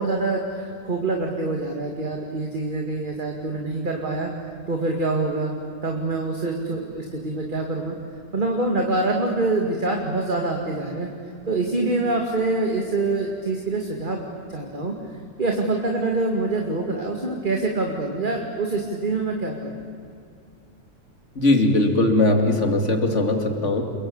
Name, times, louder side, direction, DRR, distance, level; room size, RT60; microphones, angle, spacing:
voice 1, 0.0-4.3 4.7-5.5 5.8-8.0 8.3-11.1 11.5-14.9 15.4-19.8, right 2 dB, 30° right, 1 dB, 2.3 m, -25 dB
voice 2, 21.4-23.8, left 2 dB, 40° left, 4 dB, 2.9 m, -20 dB
28.0 x 22.5 x 8.8 m, 2.3 s
omnidirectional pair, 1.8 m